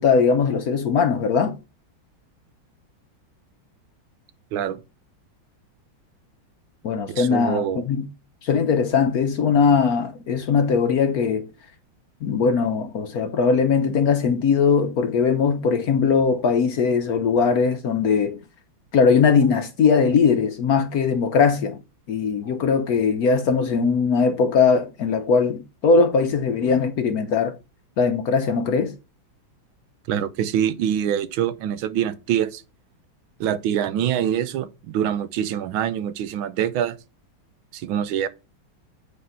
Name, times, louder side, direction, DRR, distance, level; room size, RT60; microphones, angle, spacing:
voice 1, 0.0-1.5 6.8-8.1 8.4-11.5 12.2-18.4 18.9-21.8 22.1-27.6 28.0-28.9, left 5 dB, 60° left, 1.0 m, -20 dB
voice 2, 4.5-4.8 7.1-7.8 30.1-32.6 33.4-37.0 37.7-38.3, right 9 dB, 80° right, 1.5 m, -25 dB
8.4 x 4.3 x 5.5 m
omnidirectional pair, 2.2 m